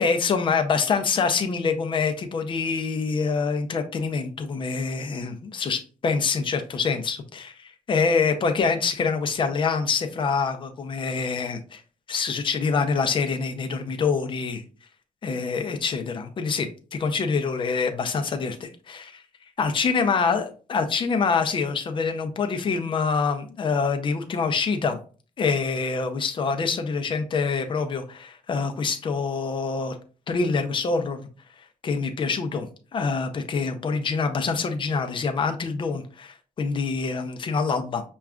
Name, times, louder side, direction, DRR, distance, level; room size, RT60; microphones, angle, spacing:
voice 1, 0.0-11.8 12.1-14.6 15.2-19.2 19.6-25.0 25.4-30.0 30.3-31.2 31.8-32.7 32.9-38.0, left 5 dB, 35° left, 6 dB, 0.5 m, -25 dB
6.0 x 2.3 x 2.3 m, 0.38 s
wide cardioid pair, 180°, 14 cm